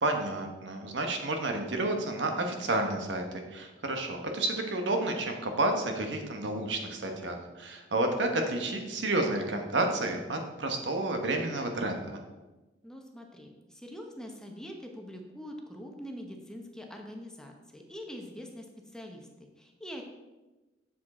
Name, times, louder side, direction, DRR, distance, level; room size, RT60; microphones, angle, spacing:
voice 1, 0.0-12.2, right 2 dB, 80° right, 4 dB, 1.2 m, -30 dB
voice 2, 12.8-20.0, equal, 5° left, 2 dB, 0.9 m, -44 dB
7.4 x 7.2 x 4.3 m, 1.1 s
head